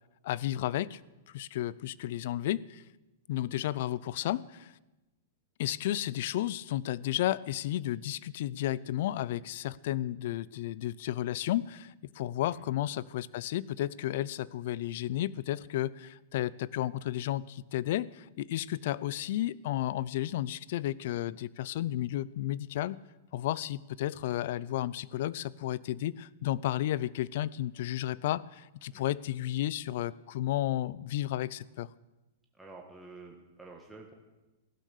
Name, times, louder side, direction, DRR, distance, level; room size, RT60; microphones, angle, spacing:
voice 1, 0.2-1.0 1.3-2.8 3.3-4.7 5.6-23.0 23.3-31.9, left 13 dB, 60° left, 22 dB, 0.5 m, -33 dB
voice 2, 32.5-34.1, right 3 dB, 5° right, -1 dB, 1.6 m, -50 dB
16.0 x 12.0 x 6.7 m, 1.0 s
hypercardioid pair, 150°, 0 cm